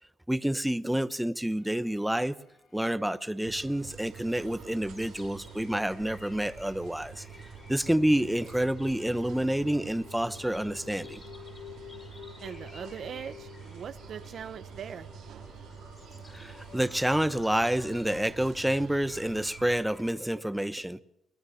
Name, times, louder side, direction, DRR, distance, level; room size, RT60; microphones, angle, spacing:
voice 1, 0.3-2.3 2.7-7.2 7.7-11.2 16.3-21.0, right 1 dB, 5° right, 0.9 m, -28 dB
sound 1, 1.6-18.0, left 9 dB, 85° left, 5.1 m, -53 dB
sound 2, 3.4-19.8, right 7 dB, 75° right, 2.1 m, -48 dB
sound 3, 4.4-20.1, left 2 dB, 25° left, 5.1 m, -53 dB
voice 2, 12.4-15.1, right 8 dB, 60° right, 0.7 m, -41 dB
24.0 x 17.5 x 7.1 m
cardioid pair, 90°, 0 cm